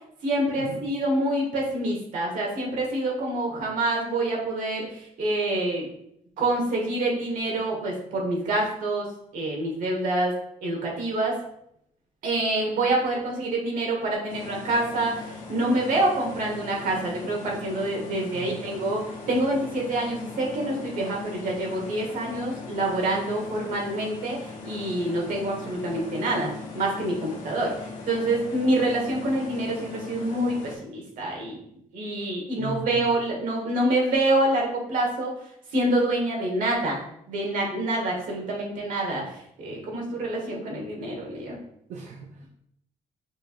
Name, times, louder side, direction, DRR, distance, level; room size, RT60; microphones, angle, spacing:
voice 1, 0.2-5.9 6.4-10.3 10.6-11.4 12.2-19.0 19.3-31.6 31.9-35.3 35.7-37.0 37.3-41.6, right 1 dB, 90° right, -1 dB, 1.4 m, -26 dB
sound 1, 14.3-30.8, left 4 dB, 85° left, 0.9 m, -39 dB
voice 2, 18.3-18.7 32.6-33.1 41.9-42.5, right 4 dB, 65° right, 0 dB, 0.5 m, -37 dB
6.2 x 3.3 x 2.5 m, 0.73 s
cardioid pair, 180°, 13 cm